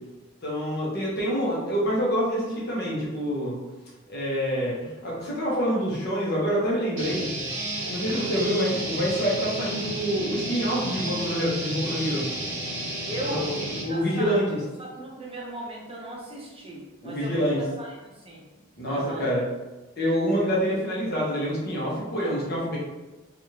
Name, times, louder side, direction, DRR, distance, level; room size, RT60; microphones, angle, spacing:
voice 1, 0.4-3.6 4.1-7.3 7.9-12.3 13.3-14.6 17.0-17.6 18.8-19.4 20.0-22.8, equal, 45° left, -5 dB, 0.9 m, -26 dB
sound 1, 7.0-13.8, right 1 dB, 55° right, 0.8 m, -32 dB
voice 2, 13.1-14.4 14.8-17.4 17.8-18.4 18.8-19.3, right 1 dB, 25° right, -3 dB, 0.6 m, -37 dB
3.3 x 2.5 x 2.8 m, 1.1 s
head